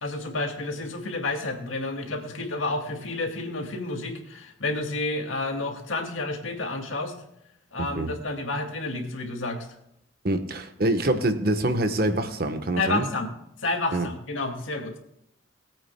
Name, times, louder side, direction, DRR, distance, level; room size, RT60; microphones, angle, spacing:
voice 1, 0.0-7.1 7.7-9.7 12.8-13.3 13.6-15.0, left 2 dB, 85° left, 3 dB, 2.2 m, -30 dB
voice 2, 7.8-8.1 10.2-13.1 13.9-14.1, right 1 dB, 50° right, 8 dB, 1.1 m, -25 dB
21.0 x 8.7 x 2.2 m, 0.78 s
head